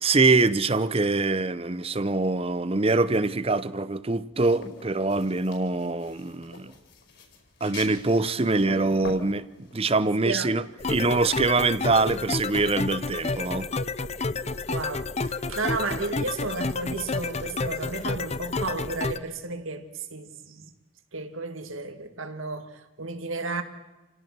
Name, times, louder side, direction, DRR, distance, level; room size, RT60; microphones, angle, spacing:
voice 1, 0.0-6.7 7.6-10.6 10.9-13.7, right 3 dB, 30° right, 0.7 m, -24 dB
sound 1, 4.3-10.9, left 2 dB, 60° left, 5.2 m, -43 dB
sound 2, 10.8-19.2, left 3 dB, 30° left, 0.7 m, -30 dB
voice 2, 14.7-20.7 21.1-23.6, right 3 dB, 85° right, 2.2 m, -33 dB
29.0 x 18.0 x 6.2 m
head